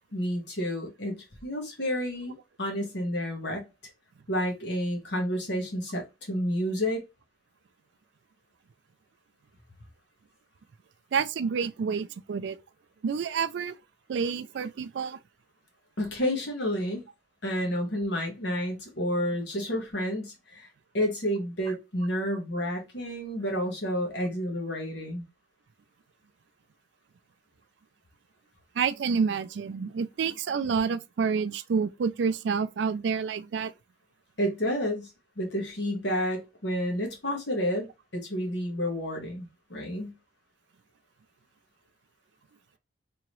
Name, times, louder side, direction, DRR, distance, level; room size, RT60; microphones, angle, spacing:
voice 1, 0.1-3.7 4.3-6.0 6.3-7.0 16.0-17.0 17.4-20.7 20.9-25.2 34.4-35.1 35.4-37.9 38.1-40.2, equal, 65° left, 1.4 m, -30 dB
voice 2, 11.1-12.6 13.0-13.8 14.1-15.2 28.8-33.7, right 6 dB, 65° right, 0.3 m, -28 dB
3.5 x 2.9 x 3.0 m
head